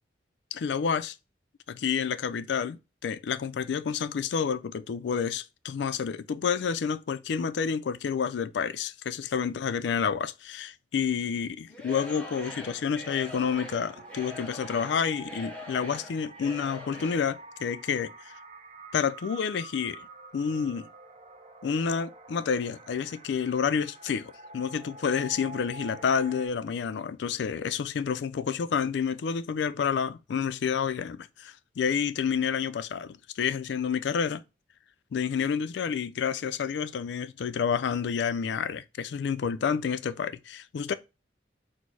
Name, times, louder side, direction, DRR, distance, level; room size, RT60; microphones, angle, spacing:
voice 1, 0.5-1.2 1.7-18.4 18.9-20.1 20.3-20.8 21.6-34.4 35.1-40.9, left 6 dB, 75° left, 0.3 m, -29 dB
Singing / Crowd, 11.7-17.4, left 1 dB, 5° left, 0.7 m, -43 dB
sound 1, 13.4-26.5, right 2 dB, 35° right, 0.7 m, -47 dB
4.3 x 2.0 x 4.5 m
head